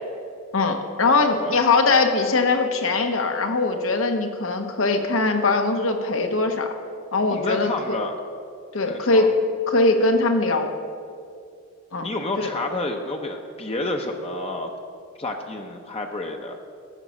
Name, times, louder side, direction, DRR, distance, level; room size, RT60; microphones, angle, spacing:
voice 1, 0.5-6.7 7.1-8.0 8.7-9.3 9.7-10.7 11.9-12.1 12.4-12.5, left 3 dB, 85° left, 5 dB, 1.1 m, -21 dB
voice 2, 7.3-8.2 8.9-9.3 12.0-14.7 15.2-16.6, left 2 dB, 30° left, 3 dB, 0.7 m, -29 dB
14.0 x 7.0 x 6.4 m, 2.4 s
head